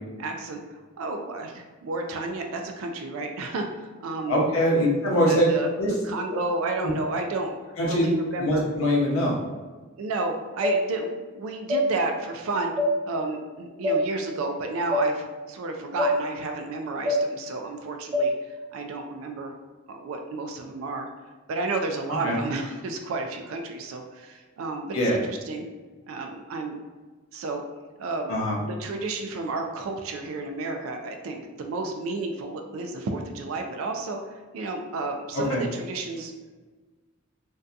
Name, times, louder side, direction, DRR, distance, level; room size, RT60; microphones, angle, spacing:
voice 1, 0.2-4.4 5.3-7.6 7.8-8.6 10.0-12.8 13.0-19.5 19.9-21.1 21.5-25.6 26.1-26.8 27.3-27.6 28.0-34.2 34.5-36.3, right 2 dB, 75° right, 3 dB, 0.3 m, -32 dB
voice 2, 4.3-5.5 5.8-5.9 7.8-8.1 8.4-9.4 22.2-22.4 24.9-25.2 28.3-28.6 35.3-35.6, equal, 90° left, -3 dB, 0.7 m, -23 dB
sound 1, 10.6-10.8 11.7-11.9 12.8-12.9 13.8-14.0 14.9-15.1 16.0-16.1 17.1-17.2 18.1-18.3, equal, 25° right, 0.5 m, -22 dB
2.6 x 2.2 x 2.4 m, 1.3 s
head